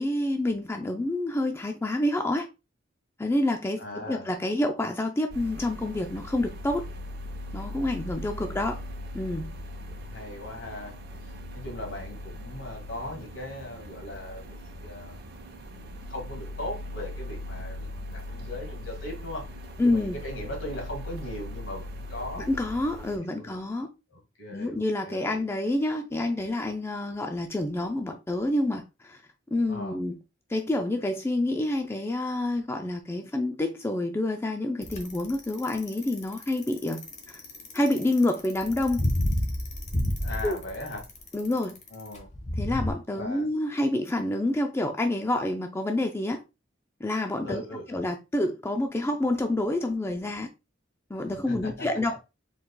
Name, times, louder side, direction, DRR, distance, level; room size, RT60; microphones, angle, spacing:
voice 1, 0.0-2.5 3.2-6.9 7.5-8.8 9.1-9.5 19.8-20.2 22.4-23.9 24.5-29.2 29.5-30.2 30.5-37.4 37.7-39.0 40.4-40.6 41.3-41.8 42.6-46.4 47.0-47.6 47.9-50.5 51.1-52.2, left 1 dB, 15° left, 0.3 m, -28 dB
voice 2, 3.8-4.3 8.3-8.5 9.9-11.0 11.5-15.2 15.7-19.5 19.8-22.5 23.3-23.6 24.1-25.4 29.7-30.0 40.2-41.1 41.9-42.3 43.1-43.5 47.4-48.0 51.5-51.9, left 1 dB, 70° left, 1.9 m, -39 dB
sound 1, 5.3-23.2, left 1 dB, 55° right, 0.8 m, -40 dB
Bicycle, 34.8-42.9, left 1 dB, 35° left, 1.1 m, -30 dB
4.6 x 3.8 x 2.2 m
head